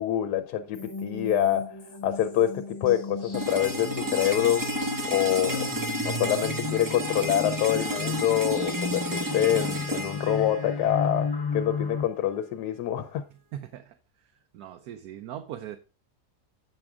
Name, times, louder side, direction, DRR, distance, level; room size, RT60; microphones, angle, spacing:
voice 1, 0.0-1.8 2.0-4.6 5.1-5.7 6.0-13.2, left 11 dB, 85° left, 1.2 m, -26 dB
sound 1, 0.7-12.0, left 4 dB, 30° left, 0.4 m, -34 dB
sound 2, 3.3-11.3, right 1 dB, 35° right, 0.3 m, -32 dB
voice 2, 13.5-13.9 14.5-15.8, right 11 dB, 75° right, 1.2 m, -39 dB
8.7 x 6.0 x 3.5 m
omnidirectional pair, 1.7 m